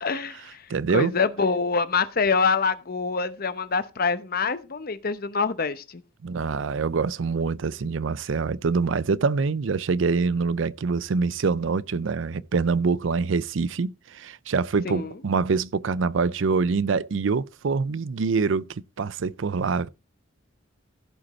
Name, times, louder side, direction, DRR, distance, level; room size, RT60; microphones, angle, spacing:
voice 1, 0.0-0.6 0.9-6.0 14.8-15.1, left 4 dB, 50° left, 0.9 m, -25 dB
voice 2, 0.7-1.1 6.2-18.7 19.0-19.9, right 4 dB, 70° right, 0.5 m, -25 dB
15.5 x 5.2 x 4.2 m
head